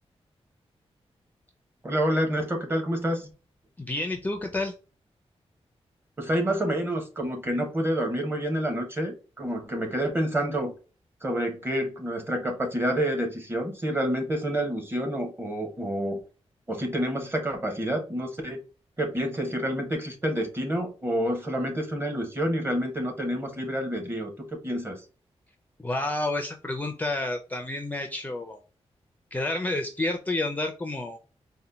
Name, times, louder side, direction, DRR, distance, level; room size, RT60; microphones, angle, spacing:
voice 1, 1.8-3.3 6.2-10.7 11.2-16.2 16.7-18.6 19.0-25.0, equal, 20° right, 3 dB, 1.2 m, -28 dB
voice 2, 3.8-4.7 25.8-28.6 29.3-31.2, left 2 dB, 15° left, 4 dB, 0.5 m, -30 dB
4.2 x 2.2 x 3.9 m, 0.34 s
wide cardioid pair, 155°, 11 cm